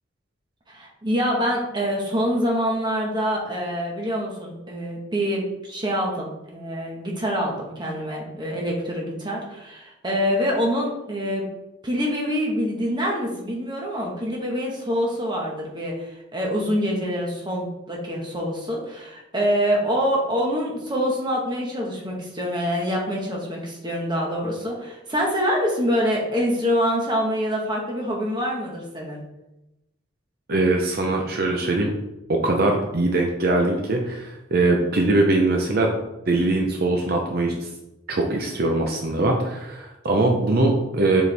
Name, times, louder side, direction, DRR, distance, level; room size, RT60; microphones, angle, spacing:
voice 1, 0.7-11.5 11.8-29.2, equal, 25° right, -1 dB, 1.4 m, -25 dB
voice 2, 30.5-31.9 32.3-35.9 36.3-37.7 38.1-41.2, right 2 dB, 55° right, 1 dB, 0.7 m, -21 dB
6.7 x 4.5 x 3.4 m, 0.94 s
head